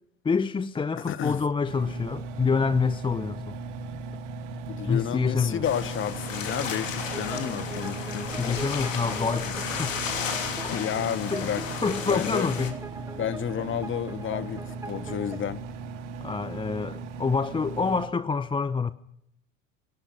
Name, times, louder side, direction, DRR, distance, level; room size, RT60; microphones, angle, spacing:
voice 1, 0.2-3.6 4.9-5.6 8.4-10.0 10.6-10.8 11.3-11.5 11.8-12.8 16.2-18.9, left 5 dB, 15° left, 0.7 m, -27 dB
voice 2, 1.1-1.4 4.7-8.3 10.7-11.6 12.0-12.5 13.2-15.6, left 9 dB, 30° left, 1.4 m, -31 dB
Engine, 1.7-18.1, right 4 dB, 65° right, 2.2 m, -38 dB
sound 1, 5.6-12.7, left 6 dB, 80° left, 3.2 m, -34 dB
sound 2, 7.1-15.4, right 2 dB, 10° right, 1.8 m, -41 dB
23.5 x 12.0 x 9.8 m
figure-of-eight pair, 80°, 39 cm